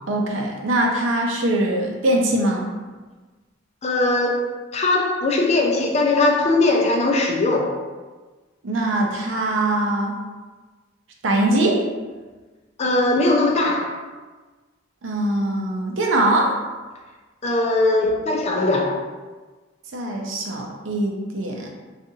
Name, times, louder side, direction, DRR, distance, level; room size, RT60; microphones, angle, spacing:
voice 1, 0.1-2.7 8.6-10.2 11.2-11.8 15.0-16.5 19.9-21.7, right 1 dB, 70° right, 0 dB, 0.6 m, -22 dB
voice 2, 3.8-7.7 12.8-14.0 17.4-19.0, left 2 dB, 35° left, 1 dB, 0.4 m, -20 dB
4.0 x 2.4 x 2.7 m, 1.3 s
head